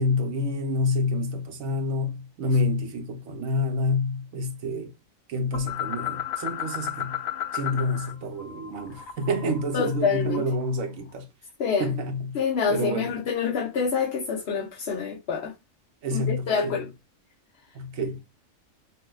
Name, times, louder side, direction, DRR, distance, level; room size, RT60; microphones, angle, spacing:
voice 1, 0.0-4.9 5.3-7.2 7.5-11.3 11.8-12.4 12.7-13.1 16.0-16.8 17.7-18.2, left 2 dB, 90° right, 1.3 m, -28 dB
sound 1, 5.5-8.1 8.4-10.7, left 11 dB, 85° left, 1.0 m, -34 dB
voice 2, 9.7-10.4 11.6-11.9 12.3-15.5 16.1-16.9, left 5 dB, 55° left, 1.0 m, -26 dB
5.6 x 2.3 x 2.2 m
omnidirectional pair, 1.4 m